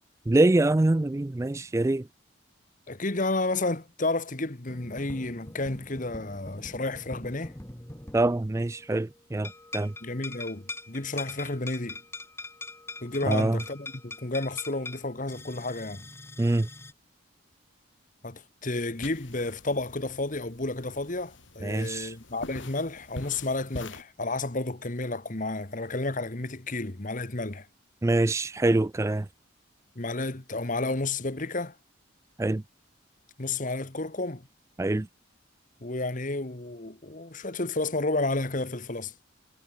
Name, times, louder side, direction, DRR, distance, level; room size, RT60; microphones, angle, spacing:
voice 1, 0.3-2.1 8.1-9.9 13.2-13.6 16.4-16.7 21.6-22.1 28.0-29.3 32.4-32.6 34.8-35.1, right 2 dB, 15° right, 0.3 m, -24 dB
voice 2, 2.9-7.5 10.0-12.0 13.0-16.1 18.2-27.7 29.9-31.7 33.4-34.4 35.8-39.1, left 2 dB, 40° left, 1.5 m, -31 dB
sound 1, 4.7-9.2 9.4-16.9, left 2 dB, 10° left, 1.8 m, -43 dB
sound 2, 18.9-24.0, left 1 dB, 65° left, 5.2 m, -44 dB
head